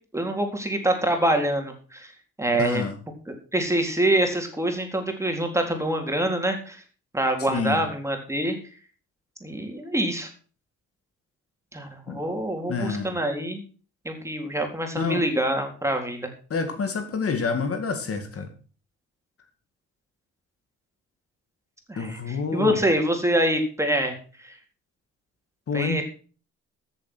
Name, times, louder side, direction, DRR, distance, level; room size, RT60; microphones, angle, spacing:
voice 1, 0.1-2.1 2.4-2.8 3.3-6.8 7.1-8.6 9.4-10.3 11.7-13.6 14.0-16.3 21.9-24.6 25.7-26.0, right 1 dB, 10° right, 3 dB, 3.9 m, -25 dB
voice 2, 2.6-3.0 7.5-7.8 12.1-12.2 12.7-13.1 15.0-15.2 16.5-18.5 22.0-22.8 25.7-26.0, left 4 dB, 50° left, 7 dB, 2.2 m, -28 dB
14.0 x 7.5 x 6.2 m, 0.39 s
cardioid pair, 90°, 30 cm